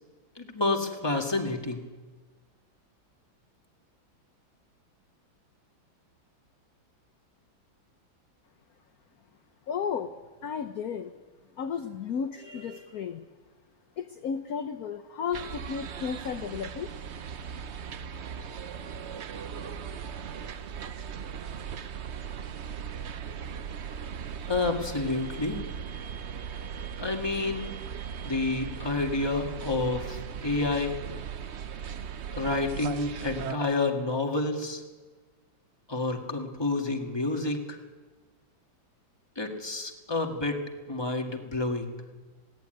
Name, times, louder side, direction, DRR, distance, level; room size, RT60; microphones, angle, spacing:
voice 1, 0.4-1.8 24.5-25.6 27.0-27.7 28.2-30.9 32.3-34.8 35.9-37.8 39.4-40.6 40.9-41.9, left 3 dB, 15° left, 2 dB, 1.9 m, -29 dB
voice 2, 9.7-10.1 10.4-11.1 11.6-13.2 14.0-16.9, left 7 dB, 55° left, 7 dB, 1.2 m, -33 dB
sound 1, 15.3-33.6, right 7 dB, 65° right, 0.6 m, -38 dB
20.5 x 17.5 x 9.3 m, 1.3 s
omnidirectional pair, 2.2 m